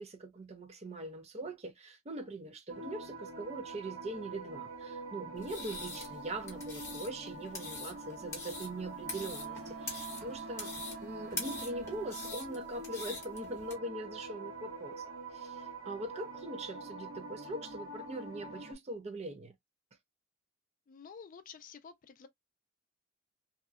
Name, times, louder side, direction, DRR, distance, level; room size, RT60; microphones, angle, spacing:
voice 1, 0.0-10.7 11.0-19.5, right 1 dB, 30° right, 0.5 m, -42 dB
sound 1, 2.7-18.7, right 3 dB, 65° right, 1.2 m, -45 dB
sound 2, 5.4-13.7, left 3 dB, 15° left, 1.0 m, -44 dB
Wind instrument woodwind instrument, 9.0-12.4, right 5 dB, 85° right, 1.1 m, -49 dB
voice 2, 20.9-22.3, left 6 dB, 40° left, 0.3 m, -51 dB
2.7 x 2.1 x 2.2 m
head